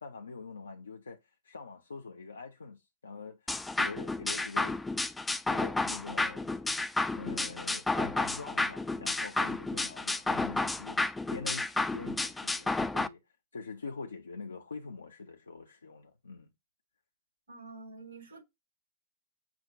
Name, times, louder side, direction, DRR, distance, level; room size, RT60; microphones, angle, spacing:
voice 1, 0.0-4.8 5.5-6.5 7.2-11.0 11.3-13.2 13.5-16.5, left 4 dB, 75° left, 0.5 m, -44 dB
sound 1, 3.5-13.1, left 2 dB, 10° left, 0.4 m, -31 dB
voice 2, 17.5-18.4, right 3 dB, 70° right, 3.2 m, -47 dB
5.9 x 2.1 x 3.7 m
figure-of-eight pair, 90°, 0 cm